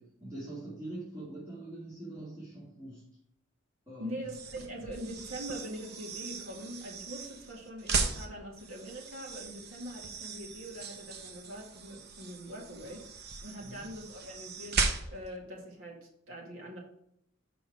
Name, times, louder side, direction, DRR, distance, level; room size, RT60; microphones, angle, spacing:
voice 1, 0.0-3.1 3.9-4.2 13.5-13.8, right 2 dB, 15° right, -11 dB, 2.6 m, -43 dB
voice 2, 4.0-13.1 13.4-16.8, equal, 90° right, -2 dB, 2.0 m, -43 dB
sound 1, 4.2-15.4, right 4 dB, 55° right, 0.8 m, -37 dB
6.2 x 5.3 x 4.7 m, 0.73 s
head